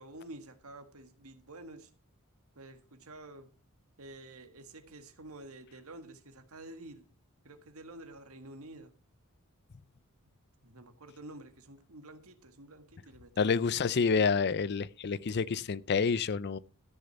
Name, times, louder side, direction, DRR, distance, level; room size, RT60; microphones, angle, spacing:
voice 1, 0.0-1.9 2.6-3.5 4.0-7.1 7.4-8.9 10.6-13.5, right 2 dB, 80° right, 1.8 m, -49 dB
voice 2, 13.4-16.6, left 5 dB, 50° left, 0.5 m, -28 dB
14.0 x 6.6 x 5.8 m
head